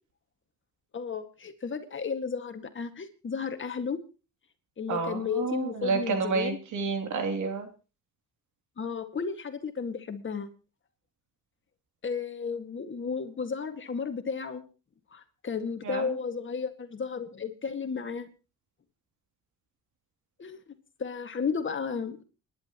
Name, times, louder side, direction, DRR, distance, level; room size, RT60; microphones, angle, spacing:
voice 1, 0.9-4.0 4.8-6.6 8.8-10.5 12.0-14.6 15.1-18.3 20.4-20.7 21.0-22.2, left 5 dB, 40° left, 8 dB, 2.0 m, -33 dB
voice 2, 4.9-7.7 15.8-16.1, right 5 dB, 75° right, 5 dB, 3.1 m, -30 dB
28.5 x 11.0 x 3.1 m, 0.33 s
cardioid pair, 90°, 30 cm